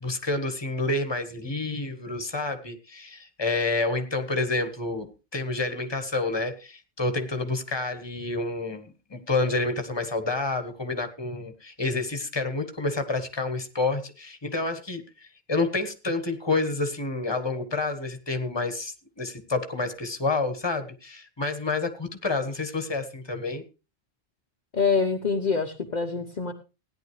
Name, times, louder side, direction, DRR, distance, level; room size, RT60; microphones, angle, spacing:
voice 1, 0.0-23.6, left 3 dB, 25° left, 8 dB, 1.4 m, -29 dB
voice 2, 24.7-26.5, left 5 dB, 45° left, 3 dB, 1.0 m, -25 dB
17.0 x 10.5 x 3.2 m, 0.31 s
omnidirectional pair, 1.1 m